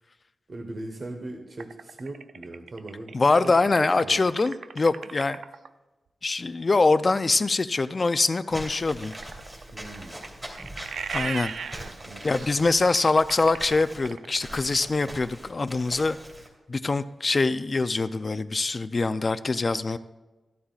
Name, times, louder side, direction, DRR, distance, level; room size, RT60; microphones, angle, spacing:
voice 1, 0.5-3.2 3.4-3.5 3.8-4.2 9.7-10.2 11.7-12.7, right 2 dB, 45° right, 1 dB, 1.1 m, -39 dB
sound 1, 1.6-5.7 8.5-14.6, right 6 dB, 90° right, 0.4 m, -38 dB
voice 2, 3.1-5.4 6.2-9.1 11.1-11.5 12.2-16.2 16.7-20.0, left 3 dB, 35° left, 12 dB, 0.4 m, -24 dB
Walk footsteps / Squeak, 8.5-16.5, equal, 10° right, 2.8 m, -42 dB
14.5 x 12.5 x 2.4 m, 1.2 s
wide cardioid pair, 115°, 0 cm